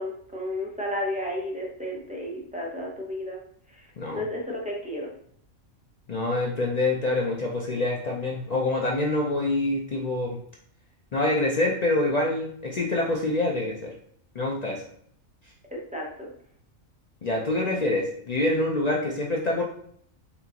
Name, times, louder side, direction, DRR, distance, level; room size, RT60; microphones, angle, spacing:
voice 1, 0.0-3.4 3.7-5.1 15.9-16.3, left 1 dB, 10° right, -3 dB, 0.6 m, -32 dB
voice 2, 6.1-10.4 11.1-13.9 14.3-14.8 17.2-19.6, left 2 dB, 60° left, -2 dB, 0.4 m, -26 dB
5.3 x 2.4 x 2.8 m, 0.64 s
omnidirectional pair, 1.4 m